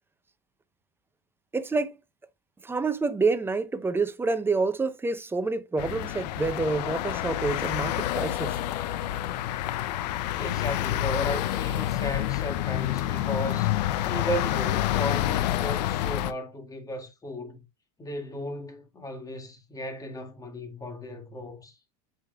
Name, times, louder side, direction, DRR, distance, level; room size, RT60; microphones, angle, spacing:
voice 1, 1.5-1.9 2.6-8.6, right 3 dB, 10° right, 0.6 m, -28 dB
sound 1, 5.8-16.3, left 13 dB, 80° left, 0.6 m, -28 dB
voice 2, 10.3-13.8 14.0-17.6 18.0-21.7, left 1 dB, 15° left, 1.8 m, -35 dB
8.3 x 4.9 x 2.3 m
supercardioid pair, 110°, 21 cm